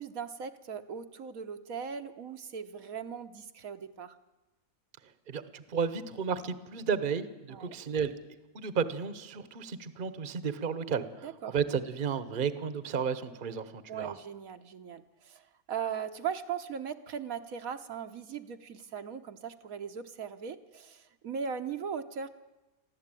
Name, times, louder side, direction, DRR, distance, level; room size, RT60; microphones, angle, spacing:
voice 1, 0.0-4.2 7.5-7.8 11.2-11.6 13.9-15.4 15.7-22.3, right 7 dB, 70° right, 7 dB, 1.3 m, -39 dB
voice 2, 5.3-8.1 8.5-14.1, right 6 dB, 40° right, 13 dB, 1.1 m, -33 dB
23.0 x 14.5 x 9.0 m, 1.1 s
omnidirectional pair, 1.6 m